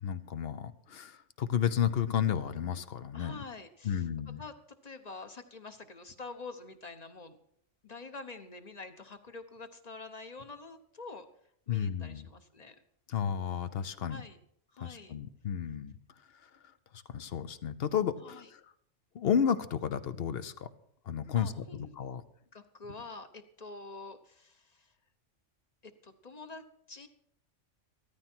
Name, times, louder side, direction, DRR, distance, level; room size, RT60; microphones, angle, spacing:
voice 1, 0.0-3.4 3.8-4.4 11.7-12.3 13.1-14.2 14.8-15.9 16.4-16.5 17.1-18.6 19.1-20.7 21.1-21.6 22.0-22.2, left 8 dB, 60° left, 13 dB, 0.9 m, -32 dB
voice 2, 3.1-4.1 4.4-4.5 4.8-7.4 7.8-11.3 11.7-12.8 14.1-14.4 14.7-15.2 18.2-18.5 21.3-22.2 22.5-24.9 25.8-27.1, left 3 dB, 35° left, 8 dB, 1.0 m, -47 dB
15.0 x 13.5 x 4.5 m, 0.70 s
omnidirectional pair, 1.3 m